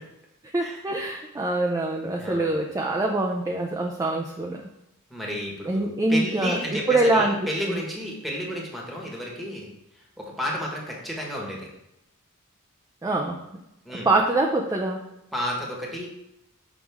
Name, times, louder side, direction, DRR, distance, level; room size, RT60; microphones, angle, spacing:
voice 1, 0.5-4.6 5.6-6.6 6.9-7.8 13.0-13.4 14.0-15.0, right 2 dB, 15° right, 0 dB, 0.4 m, -24 dB
voice 2, 2.2-2.5 5.1-9.7 10.2-11.7 13.8-14.1 15.3-16.1, equal, ahead, -2 dB, 1.3 m, -32 dB
6.2 x 4.9 x 3.5 m, 0.87 s
head